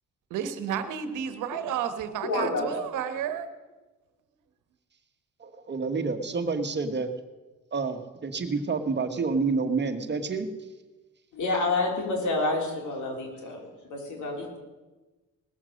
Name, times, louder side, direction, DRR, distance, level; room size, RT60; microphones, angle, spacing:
voice 1, 0.3-3.5, right 8 dB, 90° right, 10 dB, 1.2 m, -31 dB
voice 2, 2.2-2.8 11.3-14.6, left 2 dB, 75° left, 0 dB, 3.7 m, -29 dB
voice 3, 5.4-7.1 7.7-10.5, right 4 dB, 35° right, 8 dB, 1.4 m, -28 dB
18.5 x 7.2 x 6.4 m, 1.2 s
cardioid pair, 90°, 30 cm